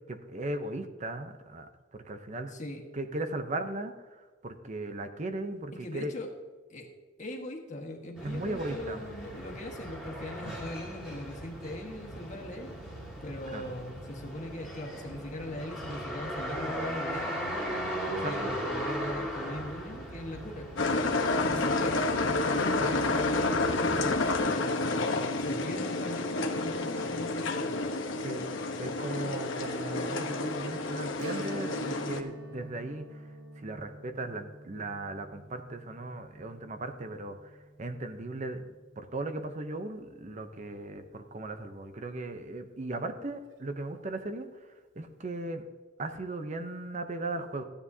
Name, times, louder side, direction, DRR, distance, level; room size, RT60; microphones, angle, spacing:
voice 1, 0.0-1.7 2.1-2.5 2.9-6.1 8.2-9.0 10.4-10.6 13.5-13.7 18.2-18.6 28.2-28.5 28.8-33.2 33.6-37.5 37.8-38.6 39.0-44.5 45.0-45.6 46.0-47.6, right 2 dB, 35° right, 7 dB, 0.6 m, -37 dB
voice 2, 2.5-2.8 5.7-6.3 6.7-6.9 7.2-12.8 13.2-17.4 18.1-20.7 21.5-27.7, left 1 dB, 40° left, 2 dB, 1.5 m, -40 dB
sound 1, 8.2-24.4, equal, ahead, 2.4 m, -38 dB
sound 2, 20.8-32.2, left 2 dB, 70° left, 1.0 m, -30 dB
Strum, 31.2-40.4 40.7-40.8 43.3-43.5 44.0-44.1, right 1 dB, 70° right, 1.0 m, -47 dB
14.5 x 9.9 x 2.7 m, 1.3 s
head